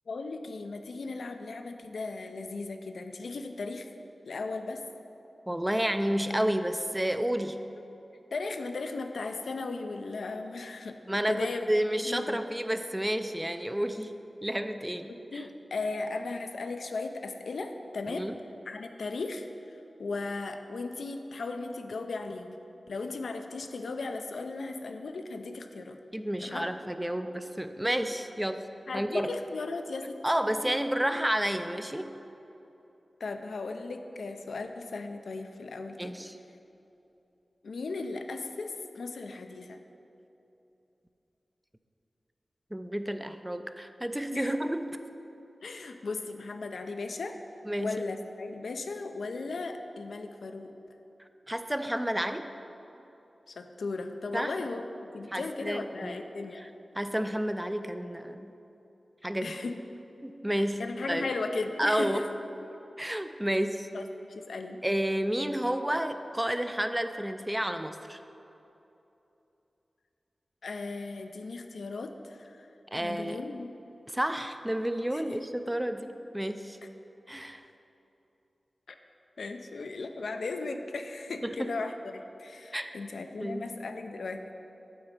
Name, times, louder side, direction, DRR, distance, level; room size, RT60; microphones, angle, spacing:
voice 1, 0.1-3.9 4.2-4.8 8.3-11.7 12.0-12.4 15.3-18.3 18.7-22.5 22.9-26.0 26.4-26.7 28.9-30.2 33.2-36.1 37.6-39.8 44.3-44.5 45.6-47.4 47.8-50.7 53.5-56.6 59.4-59.8 60.5-62.3 63.9-64.8 70.6-72.7 72.9-73.7 75.1-75.4 78.9-79.0 79.4-84.5, left 3 dB, 90° left, 6 dB, 0.4 m, -37 dB
voice 2, 5.5-7.6 11.1-14.1 14.4-15.4 18.1-18.3 26.1-28.6 28.9-29.3 30.2-32.1 36.0-36.4 42.7-45.0 47.7-48.0 51.5-52.5 54.3-54.5 55.3-56.3 57.0-58.5 59.2-59.5 60.2-61.3 61.8-62.2 63.0-63.9 64.8-68.2 72.9-73.4 74.1-76.8 77.3-77.6 81.4-81.7 82.7-83.0 83.4-83.7, equal, 10° right, 8 dB, 0.4 m, -30 dB
8.4 x 4.0 x 5.2 m, 2.9 s
cardioid pair, 55°, 0 cm